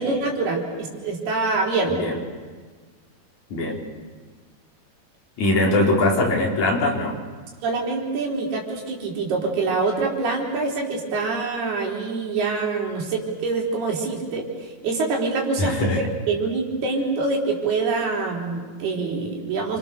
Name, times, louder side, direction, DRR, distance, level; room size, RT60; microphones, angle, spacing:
voice 1, 0.0-1.9 7.6-19.8, right 3 dB, 80° right, 0 dB, 6.2 m, -25 dB
voice 2, 3.5-3.9 5.4-7.2 15.6-16.0, left 2 dB, 50° left, -1 dB, 5.6 m, -21 dB
30.0 x 25.5 x 6.9 m, 1.5 s
omnidirectional pair, 4.5 m